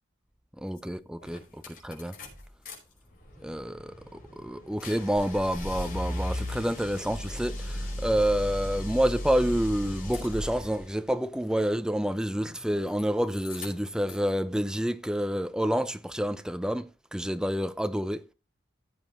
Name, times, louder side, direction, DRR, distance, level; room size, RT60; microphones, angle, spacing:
voice 1, 0.6-1.4 1.7-2.1 3.4-3.9 4.4-18.2, equal, 5° right, 0.6 m, -28 dB
sound 1, 0.8-0.9 1.2-2.8 3.1-10.8 12.3-13.0 13.3-14.3, left 1 dB, 50° left, 5.0 m, -37 dB
16.0 x 7.6 x 3.1 m
head